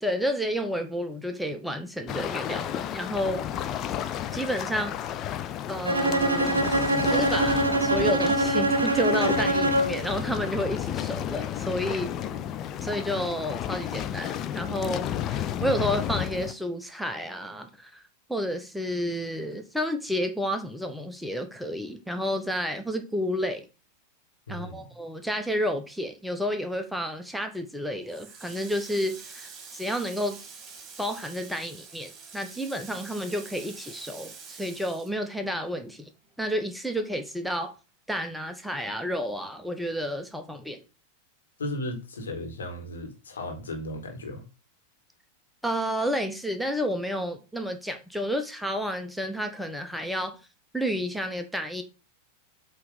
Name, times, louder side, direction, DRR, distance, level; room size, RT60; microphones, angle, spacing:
voice 1, 0.0-3.4 4.3-5.4 5.7-6.6 7.1-12.1 12.8-18.0 18.3-23.7 24.5-30.4 31.0-36.1 36.4-37.7 38.1-40.8 45.6-50.3 50.7-51.8, equal, ahead, 0.8 m, -31 dB
sound 1, 2.1-16.5, left 10 dB, 35° left, 0.5 m, -32 dB
Bowed string instrument, 5.9-10.1, right 1 dB, 80° right, 0.7 m, -24 dB
voice 2, 24.5-24.9 41.6-44.4, left 1 dB, 70° left, 1.8 m, -35 dB
Water tap faucet, 28.1-35.9 36.2-37.6, right 5 dB, 30° right, 2.0 m, -46 dB
7.9 x 3.1 x 5.1 m
figure-of-eight pair, 90°, 0 cm